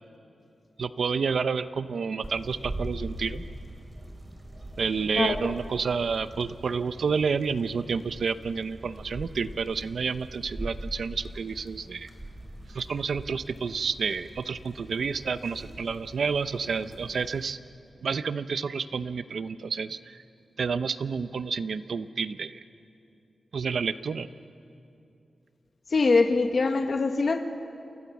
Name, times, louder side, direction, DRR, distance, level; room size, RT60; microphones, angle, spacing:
voice 1, 0.8-3.4 4.8-12.1 12.7-17.6 18.0-20.2 20.6-22.6 23.5-24.3, right 5 dB, 65° right, 12 dB, 0.7 m, -29 dB
sound 1, 2.2-17.5, right 1 dB, 20° right, 4.3 m, -42 dB
voice 2, 5.2-5.5 25.9-27.5, left 3 dB, 45° left, 6 dB, 1.3 m, -23 dB
29.5 x 27.5 x 7.2 m, 2.7 s
wide cardioid pair, 165°, 0 cm